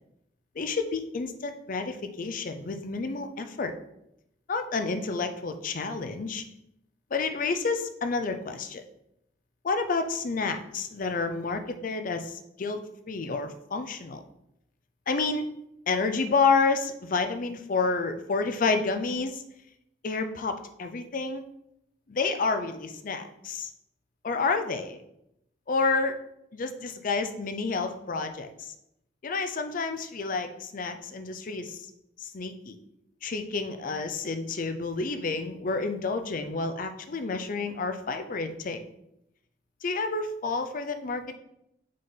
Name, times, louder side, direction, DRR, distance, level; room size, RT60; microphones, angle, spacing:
voice 1, 0.6-3.8 4.5-6.4 7.1-8.8 9.6-14.2 15.1-15.5 15.9-19.4 20.0-21.4 22.1-23.7 24.2-25.0 25.7-26.2 26.5-28.7 29.2-31.8 32.2-32.8 33.2-38.8 39.8-41.3, left 4 dB, 50° left, 8 dB, 0.5 m, -29 dB
6.4 x 3.8 x 4.0 m, 0.82 s
head